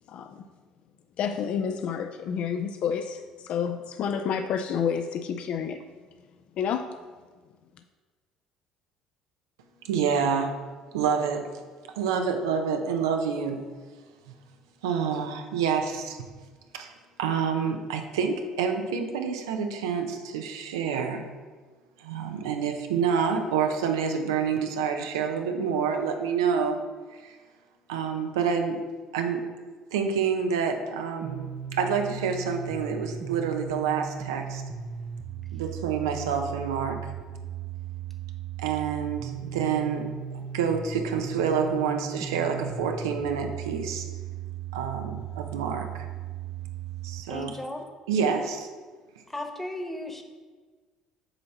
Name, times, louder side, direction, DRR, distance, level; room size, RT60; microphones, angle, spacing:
voice 1, 0.1-0.4 1.2-5.8 6.6-7.0, left 7 dB, 60° left, 7 dB, 0.4 m, -29 dB
voice 2, 9.8-10.6 10.9-11.5 12.0-13.6 14.8-16.2 16.7-16.9 17.2-21.3 22.0-26.8 27.1-27.4 27.9-28.8 29.1-29.4 29.9-34.6 35.5-37.0 38.6-40.1 40.3-44.0 44.7-46.1 47.0-47.5 48.1-48.7, right 6 dB, 90° right, 5 dB, 0.6 m, -28 dB
sound 1, 31.2-47.2, right 8 dB, 50° right, 0.6 m, -37 dB
voice 3, 47.3-47.8 49.3-50.2, left 1 dB, 10° left, 4 dB, 1.0 m, -35 dB
7.9 x 2.8 x 5.7 m, 1.4 s
hypercardioid pair, 70°, 2 cm